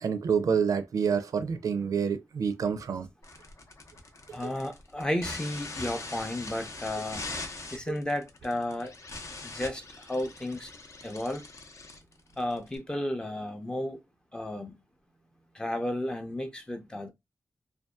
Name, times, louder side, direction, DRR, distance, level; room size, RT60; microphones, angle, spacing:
voice 1, 0.0-3.1 7.9-8.0, right 6 dB, 75° right, 0.4 m, -28 dB
sound 1, 3.2-12.8, left 3 dB, 55° left, 0.7 m, -42 dB
voice 2, 4.3-7.3 7.7-8.9 9.4-10.7 11.0-11.4 12.4-14.0 14.3-14.8 15.5-17.1, left 1 dB, 15° left, 0.5 m, -33 dB
2.6 x 2.2 x 2.2 m
wide cardioid pair, 135°, 6 cm